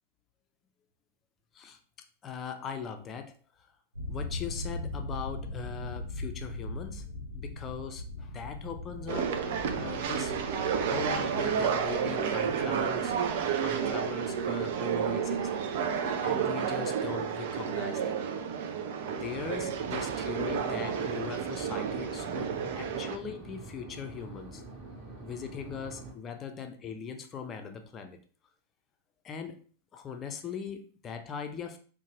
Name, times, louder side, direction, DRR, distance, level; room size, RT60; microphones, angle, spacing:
voice 1, 2.2-3.3 4.1-7.0 7.3-10.3 10.9-13.1 13.6-15.5 16.2-18.2 19.1-24.6 25.2-28.2 29.2-29.6 29.9-31.8, left 6 dB, 25° left, 6 dB, 0.5 m, -40 dB
sound 1, 3.9-17.6, left 2 dB, 85° right, 1.0 m, -41 dB
sound 2, 9.1-23.2, right 7 dB, 50° right, 0.3 m, -31 dB
sound 3, 19.2-26.1, right 2 dB, 30° right, 1.0 m, -46 dB
2.6 x 2.1 x 2.9 m, 0.42 s
figure-of-eight pair, 90°, 0 cm